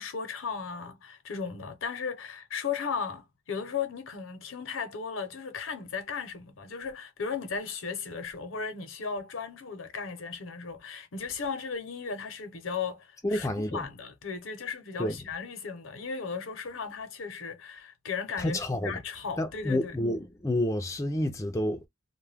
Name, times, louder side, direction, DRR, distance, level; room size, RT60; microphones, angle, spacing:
voice 1, 0.0-20.0, left 5 dB, 80° left, 0.7 m, -36 dB
voice 2, 13.2-13.8 15.0-15.2 18.4-19.0 19.4-21.9, left 1 dB, 15° left, 0.4 m, -29 dB
2.2 x 2.1 x 3.2 m
head